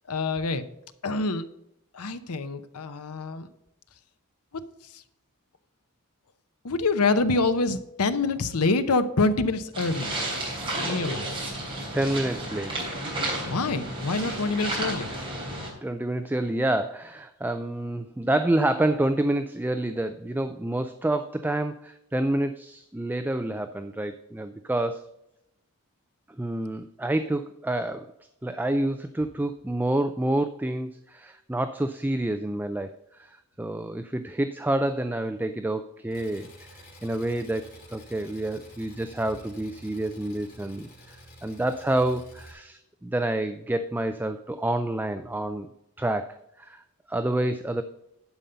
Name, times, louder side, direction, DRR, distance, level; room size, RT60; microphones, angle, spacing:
voice 1, 0.1-0.6 1.0-1.5 1.9-3.5 4.5-4.6 4.9-5.0 6.6-10.1 10.9-11.3 13.5-15.1, left 3 dB, 80° left, 11 dB, 0.8 m, -26 dB
sound 1, 9.7-15.7, right 1 dB, 25° right, 3.6 m, -32 dB
voice 2, 11.9-12.8 15.1-25.0 26.4-28.1 28.4-45.7 46.0-46.8 47.1-47.8, right 1 dB, 10° right, 9 dB, 0.4 m, -28 dB
Engine, 36.1-42.5, equal, 45° left, 3.4 m, -50 dB
11.5 x 5.4 x 5.6 m, 0.82 s
head